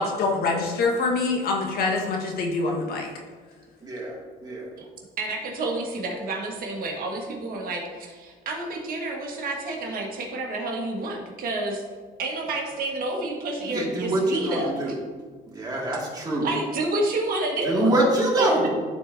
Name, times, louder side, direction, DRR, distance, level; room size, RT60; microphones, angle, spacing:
voice 1, 0.0-3.1, left 3 dB, 65° left, 1 dB, 1.5 m, -25 dB
voice 2, 3.8-4.7 13.6-14.9 15.5-16.5 17.6-18.7, right 1 dB, 25° right, -4 dB, 2.2 m, -25 dB
voice 3, 5.2-11.8 12.2-15.0 16.4-17.9 18.4-18.5, right 2 dB, 60° right, 0 dB, 1.6 m, -29 dB
12.5 x 4.3 x 2.7 m, 1.5 s
cardioid pair, 110°, 17 cm